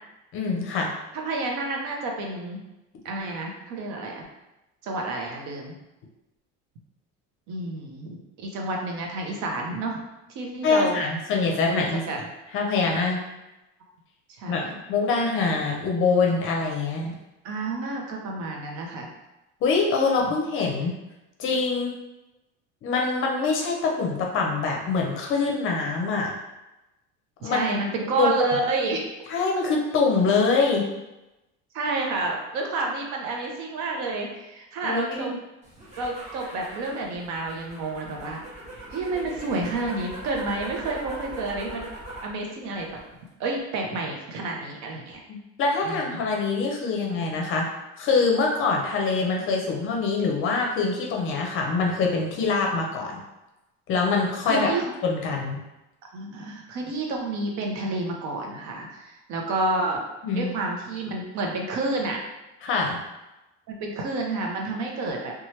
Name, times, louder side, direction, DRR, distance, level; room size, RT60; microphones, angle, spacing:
voice 1, 0.3-0.9 10.6-12.0 12.5-13.2 14.5-17.2 19.6-20.9 21.4-21.9 22.8-26.3 27.4-27.6 28.2-28.3 29.3-30.8 34.8-35.4 45.6-47.7 48.0-53.2 53.9-54.7 55.0-55.6 60.2-60.5 62.6-63.0, left 4 dB, 40° left, 0 dB, 0.5 m, -24 dB
voice 2, 1.1-2.6 3.0-4.3 4.8-5.8 7.5-10.0 10.3-11.0 11.6-12.2 14.4-14.7 17.4-19.1 27.4-29.0 31.7-35.3 36.0-38.4 38.9-41.8 42.2-43.0 43.4-45.2 45.8-46.2 54.4-54.8 56.1-60.0 60.3-62.2 63.7-65.3, right 2 dB, 60° right, 0 dB, 0.7 m, -29 dB
sound 1, 35.6-42.4 42.7-43.3, right 1 dB, 25° right, 0.9 m, -41 dB
2.8 x 2.3 x 3.0 m, 0.98 s
cardioid pair, 155°, 31 cm